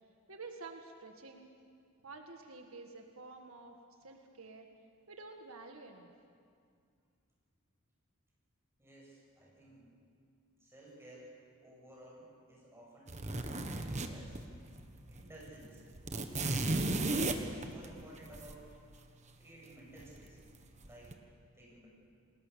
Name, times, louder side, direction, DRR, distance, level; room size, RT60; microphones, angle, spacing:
voice 1, 0.3-1.5 2.0-4.7 5.1-6.1, right 3 dB, 80° right, 3 dB, 1.8 m, -50 dB
voice 2, 8.8-9.9 10.6-11.3 11.6-14.4 15.1-15.8 16.5-18.7 19.4-20.4 20.8-21.2 21.5-21.9, right 1 dB, 10° right, -4 dB, 7.7 m, -55 dB
sound 1, 13.1-14.8 15.1-15.2 15.5-18.5 20.0-20.5 20.8-21.1, right 2 dB, 35° right, 1.4 m, -34 dB
29.5 x 20.0 x 7.0 m, 2.3 s
head